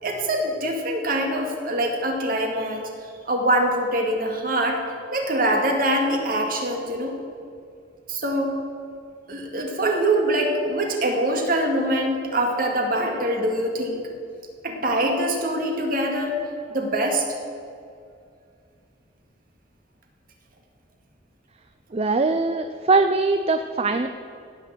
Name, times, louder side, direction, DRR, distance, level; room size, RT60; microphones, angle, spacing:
voice 1, 0.0-2.9 3.3-4.8 5.1-7.1 8.1-8.5 9.3-14.0 14.6-16.4 16.7-17.2, right 1 dB, 50° right, 2 dB, 2.1 m, -24 dB
voice 2, 21.9-24.1, right 3 dB, 35° right, 8 dB, 0.5 m, -21 dB
16.5 x 6.7 x 7.4 m, 2.3 s
head